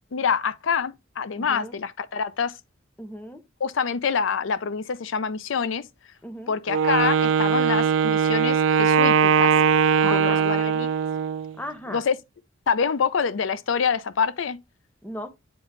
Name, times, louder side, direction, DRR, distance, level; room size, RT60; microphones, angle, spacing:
voice 1, 0.1-2.5 3.6-5.9 6.5-9.5 10.0-10.9 11.9-12.2 12.7-14.6, left 6 dB, 85° left, 0.5 m, -26 dB
voice 2, 1.4-1.8 3.0-3.4 6.2-6.5 10.0-10.5 11.6-12.0 15.0-15.3, left 1 dB, 10° left, 0.6 m, -36 dB
Wind instrument woodwind instrument, 6.7-11.5, right 7 dB, 80° right, 0.4 m, -20 dB
7.8 x 3.8 x 3.2 m
head